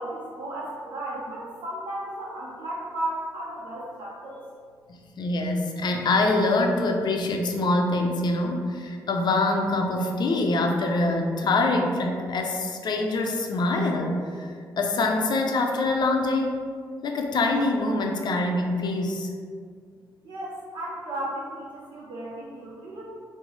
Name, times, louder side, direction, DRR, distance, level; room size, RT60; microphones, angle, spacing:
voice 1, 0.0-4.4 20.2-23.0, right 1 dB, 65° right, -6 dB, 0.5 m, -34 dB
voice 2, 4.9-14.5 14.8-16.6 17.0-19.3, left 2 dB, 55° left, 2 dB, 0.5 m, -24 dB
3.0 x 2.0 x 3.8 m, 2.1 s
supercardioid pair, 55°, 9 cm